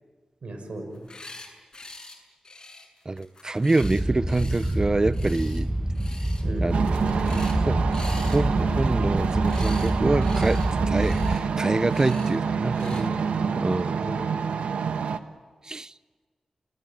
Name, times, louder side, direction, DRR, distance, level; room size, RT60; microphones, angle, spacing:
voice 1, 0.4-1.0 6.4-6.7 12.8-13.6 14.0-14.7, right 2 dB, 70° right, 6.3 m, -35 dB
sound 1, 0.9-1.5 1.7-2.2 2.4-4.8 5.1-5.6 5.9-6.4 6.7-7.6 7.9-9.9 10.2-10.7 11.0-11.4 11.8-12.3 12.7-13.0, left 2 dB, 35° left, 7.5 m, -44 dB
voice 2, 3.0-5.7 6.6-8.0 8.3-12.9 13.6-14.1 15.6-15.9, right 2 dB, 35° right, 0.9 m, -26 dB
sound 2, 3.8-11.4, right 1 dB, 15° right, 1.6 m, -27 dB
sound 3, 6.7-15.2, right 6 dB, 90° right, 1.2 m, -27 dB
30.0 x 20.5 x 9.2 m
cardioid pair, 45°, 2 cm